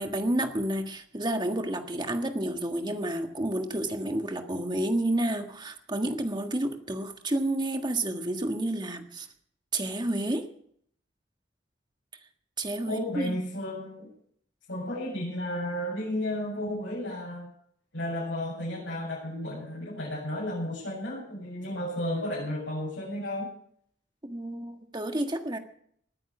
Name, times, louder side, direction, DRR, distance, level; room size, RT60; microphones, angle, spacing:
voice 1, 0.0-9.3 9.7-10.5 12.6-13.4 24.2-25.6, right 1 dB, 25° right, 5 dB, 1.6 m, -30 dB
voice 2, 12.8-14.1 14.7-17.5 17.9-23.5, left 1 dB, 85° left, -7 dB, 7.4 m, -33 dB
20.0 x 9.4 x 6.1 m, 0.66 s
head